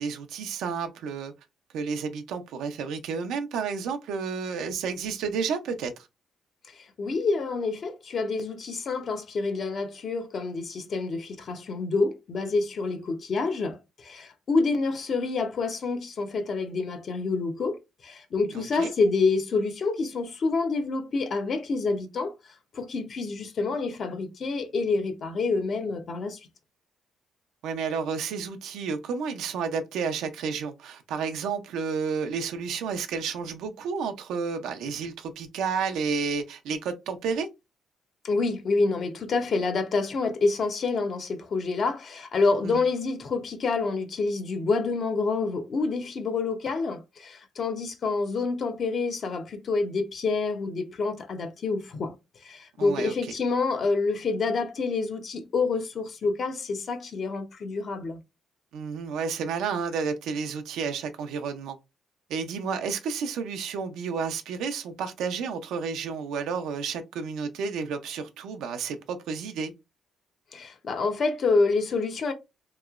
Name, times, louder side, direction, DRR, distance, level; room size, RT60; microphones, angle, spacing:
voice 1, 0.0-1.3 1.7-6.1 18.5-18.9 27.6-37.5 42.6-42.8 52.8-53.3 58.7-61.8 62.3-69.7, right 5 dB, 85° right, 0.4 m, -31 dB
voice 2, 6.7-17.8 18.0-22.3 22.7-26.4 38.2-52.1 52.4-58.2 70.5-72.3, left 3 dB, 55° left, 0.7 m, -27 dB
3.0 x 2.8 x 2.4 m
cardioid pair, 90°, 0 cm